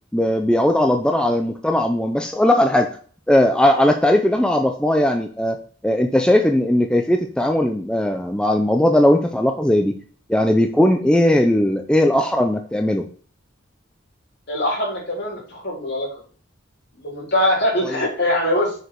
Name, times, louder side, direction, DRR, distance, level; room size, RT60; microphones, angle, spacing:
voice 1, 0.1-2.9 3.3-5.6 5.8-9.9 10.3-13.0, left 1 dB, 5° left, 4 dB, 0.5 m, -18 dB
voice 2, 14.5-16.1 16.9-18.7, left 1 dB, 55° left, -3 dB, 3.7 m, -22 dB
6.6 x 4.8 x 4.6 m, 0.43 s
head